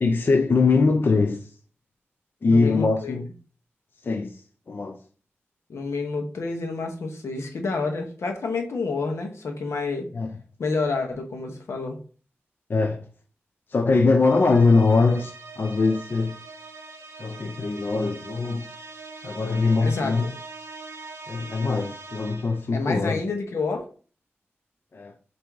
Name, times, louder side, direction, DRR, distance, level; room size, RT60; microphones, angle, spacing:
voice 1, 0.0-1.6 2.4-3.3 4.0-5.0 10.1-10.3 12.7-13.1 13.7-16.4 17.2-18.7 19.2-20.3 21.3-23.2 24.9-25.1, left 3 dB, 50° left, 0.4 m, -22 dB
voice 2, 2.5-3.2 5.7-10.1 10.6-12.0 19.8-20.3 22.7-23.9, left 3 dB, 85° left, 0.8 m, -29 dB
sound 1, 14.2-22.7, right 3 dB, 70° right, 0.6 m, -42 dB
3.4 x 2.6 x 4.6 m
wide cardioid pair, 90°, 5 cm